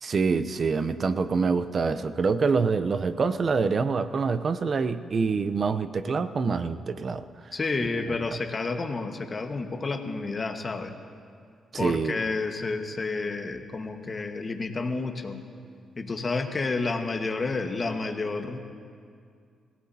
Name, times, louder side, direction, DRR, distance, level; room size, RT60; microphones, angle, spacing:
voice 1, 0.0-7.5 11.7-12.2, right 4 dB, 50° right, 12 dB, 0.7 m, -26 dB
voice 2, 7.5-10.9 11.8-15.4 15.9-18.6, left 3 dB, 40° left, 5 dB, 1.5 m, -30 dB
26.0 x 17.0 x 2.8 m, 2.2 s
cardioid pair, 70°, 0 cm